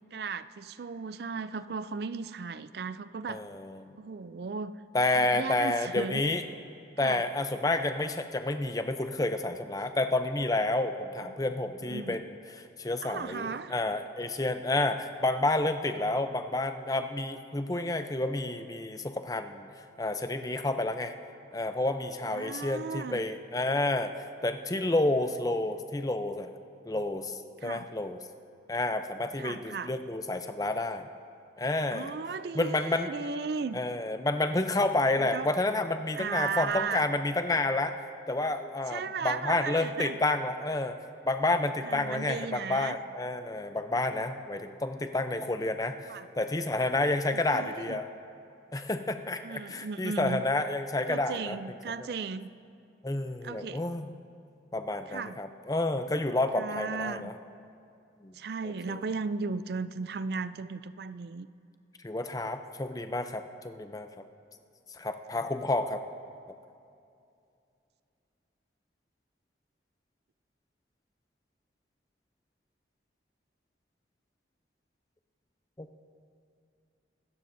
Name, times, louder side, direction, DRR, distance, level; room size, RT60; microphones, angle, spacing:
voice 1, 0.1-3.4 4.0-4.8 5.1-6.2 7.0-7.2 11.3-11.4 11.8-12.2 13.0-13.8 22.3-23.2 27.6-27.9 29.4-29.9 31.9-33.8 35.2-35.5 36.2-37.0 38.9-40.2 41.8-43.0 46.1-46.3 47.3-48.0 49.4-50.4 51.1-52.5 53.4-53.9 55.1-55.4 56.5-57.3 58.3-61.5, right 5 dB, 55° right, 14 dB, 0.4 m, -36 dB
voice 2, 3.3-3.9 4.9-6.4 7.0-19.7 20.0-21.1 21.5-24.1 24.4-26.5 26.8-28.2 28.7-31.1 31.6-32.1 32.5-33.1 33.7-37.9 38.3-41.0 41.2-48.1 48.7-51.6 53.0-54.1 54.7-57.3 58.2-58.4 58.6-59.0 62.0-64.1 64.9-66.0 75.8-75.9, left 2 dB, 20° left, 8 dB, 0.5 m, -30 dB
25.5 x 14.0 x 2.7 m, 2.5 s
head